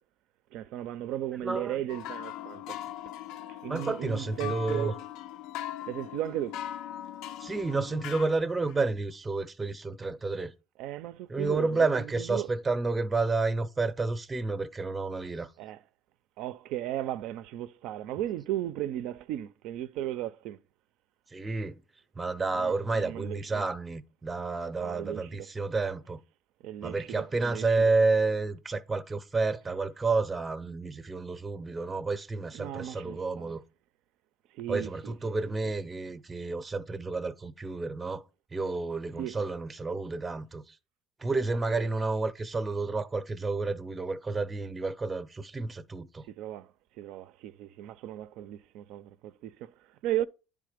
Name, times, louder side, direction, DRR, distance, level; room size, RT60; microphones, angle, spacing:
voice 1, 0.5-2.8 3.5-5.0 5.9-6.6 10.8-12.5 15.6-15.8 16.4-20.6 22.5-23.6 24.8-25.5 26.6-27.7 32.5-33.6 34.5-35.3 39.2-39.4 41.8-41.9 46.2-46.7 47.0-50.3, right 13 dB, 65° right, 0.4 m, -36 dB
voice 2, 1.4-1.8 3.7-4.9 7.4-10.5 11.3-15.5 21.3-21.8 22.2-26.2 26.8-33.6 34.7-38.2 38.5-40.7 41.2-46.2, right 3 dB, 15° right, 0.5 m, -30 dB
sound 1, 1.9-8.8, left 12 dB, 70° left, 0.5 m, -40 dB
10.0 x 3.6 x 4.9 m
cardioid pair, 130°, 0 cm